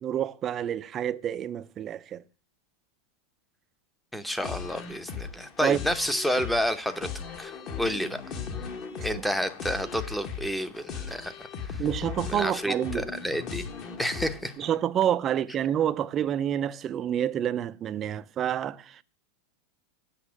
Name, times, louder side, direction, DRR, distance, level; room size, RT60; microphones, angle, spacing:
voice 1, 0.0-2.2 5.6-5.8 11.8-13.1 14.6-19.0, right 10 dB, 30° right, 0.5 m, -28 dB
voice 2, 4.1-7.1 7.4-8.2 9.0-11.3 11.7-11.8 12.3-13.7 14.0-14.5, equal, 5° left, 0.8 m, -30 dB
sound 1, 4.4-14.8, left 6 dB, 40° left, 1.5 m, -38 dB
8.2 x 6.0 x 7.3 m
supercardioid pair, 140°, 0 cm